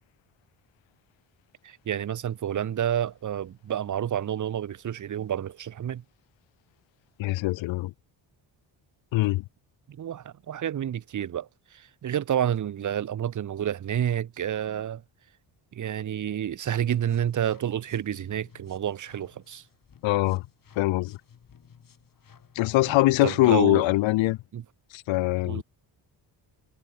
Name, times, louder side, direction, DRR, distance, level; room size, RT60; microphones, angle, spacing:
voice 1, 1.6-6.0 9.9-15.0 15.7-19.6 23.2-23.8 24.5-24.6 25.4-25.6, right 10 dB, 40° right, 0.9 m, -29 dB
voice 2, 7.2-7.9 9.1-9.4 20.0-20.4 20.8-21.2 22.6-24.4 24.9-25.6, left 19 dB, 85° left, 0.6 m, -23 dB
sound 1, 16.6-23.0, left 7 dB, 50° left, 5.2 m, -56 dB
cardioid pair, 125°, 44 cm